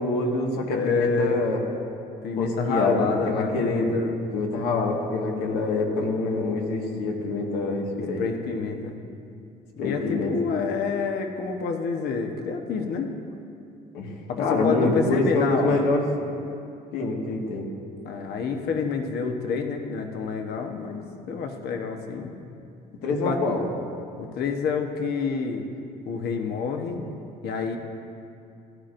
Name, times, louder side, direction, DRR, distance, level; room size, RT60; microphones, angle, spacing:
voice 1, 0.0-1.6 2.4-3.9 4.3-8.2 9.8-10.3 13.9-14.1 14.4-16.1 16.9-17.7 23.0-23.6, left 3 dB, 90° left, 0 dB, 1.8 m, -25 dB
voice 2, 0.7-1.4 2.2-4.1 8.0-9.0 9.8-13.1 14.3-15.9 18.0-22.3 23.1-23.4 24.2-25.7 26.0-27.0 27.4-27.8, left 5 dB, 70° left, 4 dB, 1.1 m, -28 dB
16.0 x 12.0 x 2.6 m, 2.5 s
cardioid pair, 110°, 17 cm